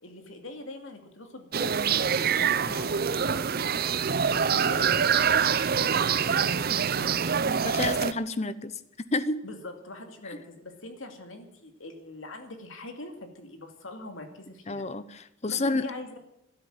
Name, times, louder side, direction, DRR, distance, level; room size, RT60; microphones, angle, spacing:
voice 1, 0.0-3.8 4.3-7.2 9.4-14.9 15.5-16.2, left 2 dB, 70° left, 5 dB, 2.6 m, -43 dB
sound 1, 1.5-8.1, right 7 dB, 45° right, 0.6 m, -25 dB
voice 2, 7.6-8.7 9.1-9.4 14.7-15.0 15.4-15.9, left 2 dB, 35° left, 14 dB, 0.8 m, -28 dB
13.0 x 12.5 x 9.0 m, 0.80 s
head